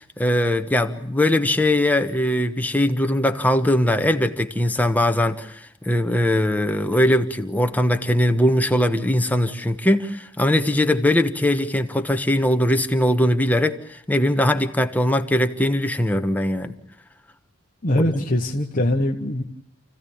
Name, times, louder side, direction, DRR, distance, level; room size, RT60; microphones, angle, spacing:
voice 1, 0.0-16.7 17.9-18.3, left 1 dB, 5° left, 6 dB, 1.2 m, -21 dB
voice 2, 17.8-19.4, left 1 dB, 35° left, 1 dB, 1.3 m, -22 dB
29.0 x 16.0 x 8.7 m, 0.68 s
head